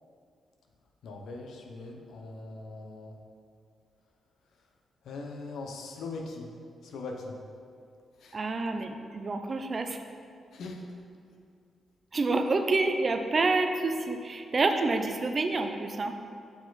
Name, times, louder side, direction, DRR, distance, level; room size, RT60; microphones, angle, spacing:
voice 1, 1.0-3.1 5.0-6.5 6.8-7.4 8.2-8.4 10.5-10.8, left 3 dB, 70° left, 2 dB, 0.7 m, -40 dB
voice 2, 8.3-10.0 12.1-16.1, right 3 dB, 30° right, 6 dB, 0.4 m, -28 dB
6.8 x 4.6 x 4.0 m, 2.3 s
wide cardioid pair, 180°, 0 cm